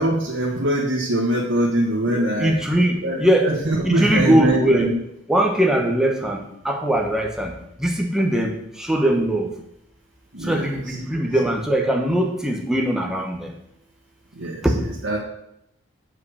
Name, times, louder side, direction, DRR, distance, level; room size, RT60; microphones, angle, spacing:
voice 1, 0.0-2.6 3.0-4.9 10.3-11.2 14.4-14.6 15.0-15.2, right 1 dB, 75° right, -4 dB, 1.6 m, -23 dB
voice 2, 2.4-3.5 3.8-4.9 5.3-6.4 6.6-7.5 7.8-8.5 8.9-9.5 10.5-13.5, right 1 dB, 5° right, 1 dB, 1.1 m, -20 dB
7.8 x 5.7 x 6.5 m, 0.79 s
head